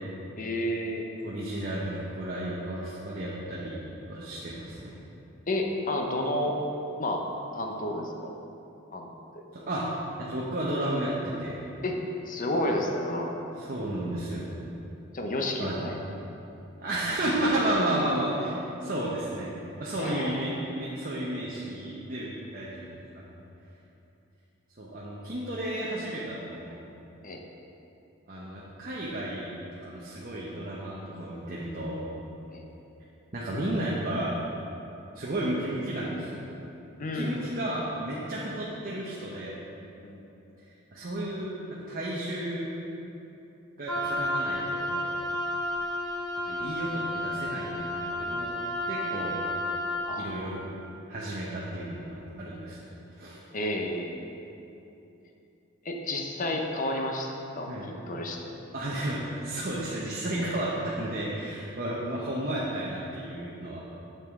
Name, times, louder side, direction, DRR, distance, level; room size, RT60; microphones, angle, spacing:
voice 1, 0.4-1.0 5.5-6.6 7.0-7.2 7.5-8.3 8.9-9.1 9.3-9.4 11.8-12.0 12.3-13.5 15.1-16.0 20.0-20.4 27.2-27.4 32.5-32.6 37.0-37.4 40.0-40.2 50.1-50.6 53.5-54.3 55.8-57.3 57.6-58.5, left 1 dB, 40° left, 2 dB, 0.8 m, -31 dB
voice 2, 1.2-3.8 4.1-4.9 9.5-9.9 10.2-11.6 13.6-14.5 15.6-15.8 16.8-19.5 19.8-23.3 24.8-26.8 28.3-29.5 29.8-32.0 33.3-34.3 35.1-36.4 37.1-39.5 40.9-41.6 41.9-42.7 43.8-45.0 46.4-48.0 48.3-48.5 48.9-49.4 50.2-50.6 51.1-52.8 53.2-53.4 57.7-57.9 58.7-63.8, right 1 dB, 45° right, -6 dB, 0.9 m, -32 dB
Wind instrument woodwind instrument, 43.9-50.1, left 1 dB, 5° left, 1.4 m, -31 dB
9.0 x 6.9 x 3.7 m, 2.9 s
head